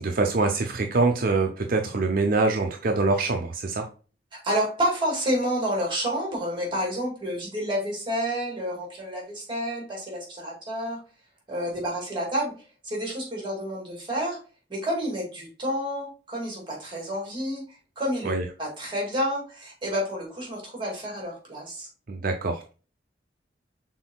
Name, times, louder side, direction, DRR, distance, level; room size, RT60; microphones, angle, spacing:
voice 1, 0.0-3.9 18.2-18.5 22.1-22.7, right 3 dB, 50° right, 4 dB, 0.6 m, -24 dB
voice 2, 4.3-11.0 11.5-12.5 12.8-14.4 14.7-17.6 18.0-18.3 18.6-21.9, equal, 30° right, -1 dB, 2.0 m, -29 dB
6.1 x 3.8 x 2.2 m, 0.35 s
head